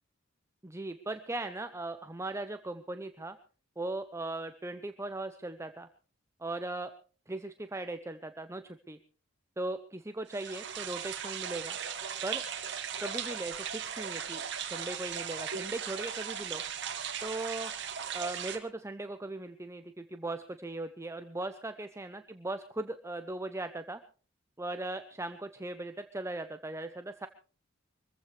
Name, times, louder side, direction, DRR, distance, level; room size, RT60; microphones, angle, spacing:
voice 1, 0.6-3.4 3.8-5.9 6.4-6.9 7.3-9.0 9.6-11.8 12.2-12.4 13.0-14.4 14.7-16.6 17.2-17.7 18.1-24.0 24.6-27.3, right 2 dB, 15° right, 9 dB, 0.6 m, -38 dB
sound 1, 10.3-18.6, right 8 dB, 60° right, 1.9 m, -37 dB
24.0 x 15.0 x 3.3 m, 0.39 s
head